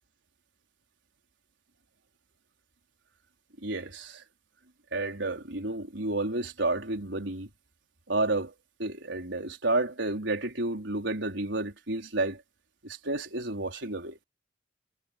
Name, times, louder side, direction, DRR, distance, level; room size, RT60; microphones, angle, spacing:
voice 1, 3.6-4.2 4.9-7.5 8.1-8.5 8.8-12.4 12.8-14.2, right 2 dB, 85° right, 4.3 m, -31 dB
head